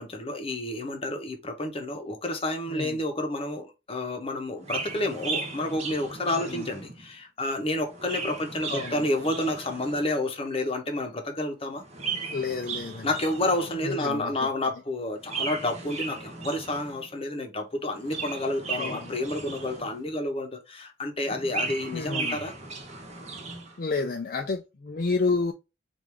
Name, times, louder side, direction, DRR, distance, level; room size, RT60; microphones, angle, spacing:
voice 1, 0.0-11.8 13.0-22.5, left 1 dB, 30° left, 0.9 m, -30 dB
Chirp tweet, 4.6-7.1 7.8-10.2 11.8-13.9 15.2-17.1 17.9-20.2 21.2-23.8, right 4 dB, 35° right, 1.3 m, -36 dB
voice 2, 8.7-9.0 12.3-13.1 13.8-14.3 18.8-19.1 21.9-22.4 23.8-25.5, left 4 dB, 45° left, 0.4 m, -30 dB
4.6 x 2.6 x 3.3 m
head